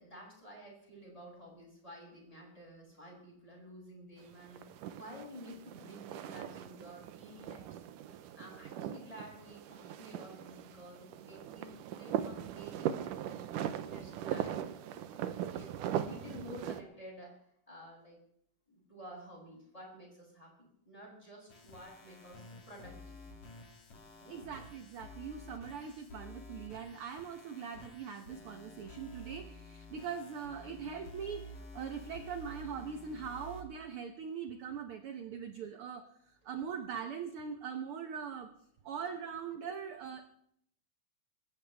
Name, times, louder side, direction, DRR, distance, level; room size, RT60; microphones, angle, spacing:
voice 1, 0.0-7.8 8.2-14.7 15.1-17.4 17.7-18.2 18.7-23.2 24.2-24.5 35.3-35.4, equal, 10° left, -3 dB, 7.6 m, -51 dB
sound 1, 4.2-16.8, right 10 dB, 80° right, 2.4 m, -40 dB
sound 2, 21.5-33.6, left 1 dB, 60° left, 3.8 m, -51 dB
voice 2, 24.3-38.5 38.8-40.2, right 7 dB, 65° right, 6 dB, 1.4 m, -42 dB
27.5 x 13.5 x 3.5 m, 0.70 s
omnidirectional pair, 3.7 m